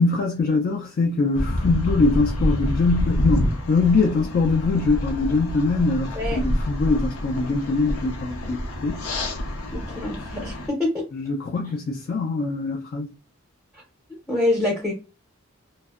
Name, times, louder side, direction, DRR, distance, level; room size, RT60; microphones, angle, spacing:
voice 1, 0.0-9.0 11.1-13.1, left 3 dB, 45° left, 0.3 m, -22 dB
sound 1, 1.3-10.7, left 1 dB, 90° left, 0.6 m, -27 dB
voice 2, 9.7-11.0 14.3-14.9, left 2 dB, ahead, 0.6 m, -25 dB
2.5 x 2.0 x 2.3 m
head